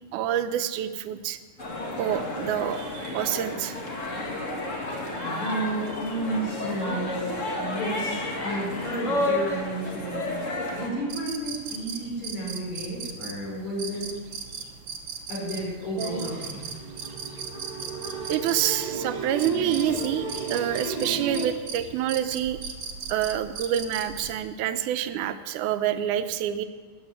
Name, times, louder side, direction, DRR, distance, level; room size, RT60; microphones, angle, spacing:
voice 1, 0.1-1.4 2.0-3.8 5.2-5.3 18.3-22.6 23.1-26.6, right 11 dB, 85° right, 11 dB, 2.1 m, -27 dB
sound 1, 1.6-10.9, left 2 dB, 30° left, 1.8 m, -31 dB
voice 2, 5.2-14.1 15.3-16.7, right 1 dB, 65° left, -6 dB, 6.3 m, -32 dB
sound 2, 11.1-24.4, right 6 dB, 60° right, 1.3 m, -38 dB
sound 3, 16.0-21.5, right 3 dB, 40° right, 0.5 m, -34 dB
13.5 x 8.4 x 9.6 m, 1.5 s
omnidirectional pair, 3.5 m